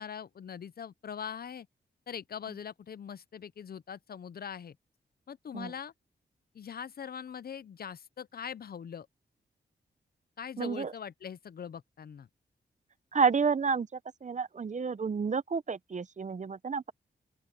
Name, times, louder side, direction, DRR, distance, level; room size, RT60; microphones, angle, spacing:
voice 1, 0.0-1.7 2.1-4.8 5.3-5.9 6.5-9.1 10.4-12.3, left 7 dB, 60° left, 0.6 m, -42 dB
voice 2, 10.6-10.9 13.1-13.9 14.2-16.9, right 5 dB, 45° right, 0.7 m, -30 dB
open air
cardioid pair, 70°, 18 cm